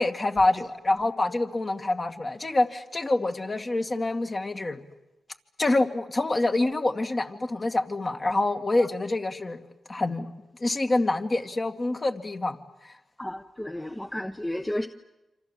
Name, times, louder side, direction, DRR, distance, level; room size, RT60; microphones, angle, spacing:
voice 1, 0.0-4.8 5.6-9.6 9.9-10.3 10.6-12.6 12.8-12.9, left 2 dB, 35° left, 5 dB, 2.3 m, -26 dB
voice 2, 13.2-14.9, left 1 dB, 15° left, 7 dB, 1.1 m, -32 dB
28.0 x 26.5 x 7.6 m, 0.99 s
cardioid pair, 60°, 0 cm